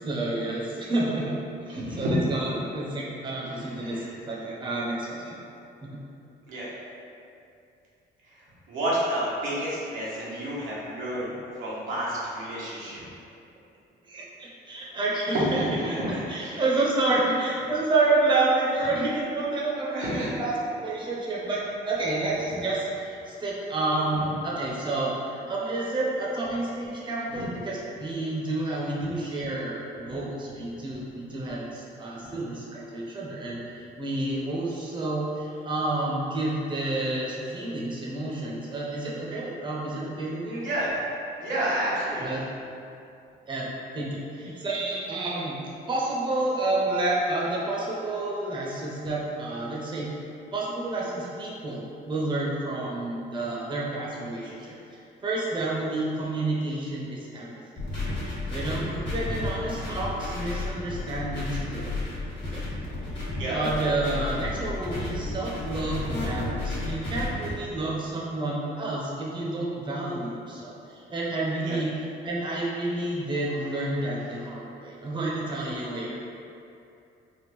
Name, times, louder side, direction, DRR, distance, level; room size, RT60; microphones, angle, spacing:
voice 1, 0.0-5.4 5.8-5.9 14.1-16.0 16.3-40.6 42.2-42.4 43.5-43.7 43.9-45.6 45.9-50.2 50.5-57.8 58.5-61.9 62.5-62.6 63.4-71.9 72.2-76.2, right 2 dB, 25° right, -5 dB, 0.6 m, -29 dB
voice 2, 1.7-2.3 3.5-4.1 6.5-6.7 8.2-8.4 8.7-11.3 11.6-13.0 15.3-16.6 19.9-20.5 27.3-27.4 30.1-30.2 40.5-40.9 41.4-42.3 44.5-44.6 63.3-63.6 71.6-71.8, right 1 dB, 90° right, -8 dB, 0.9 m, -30 dB
sound 1, 57.8-67.5, left 2 dB, 60° left, 1.3 m, -32 dB
3.5 x 2.2 x 3.0 m, 2.6 s
cardioid pair, 90°, 20 cm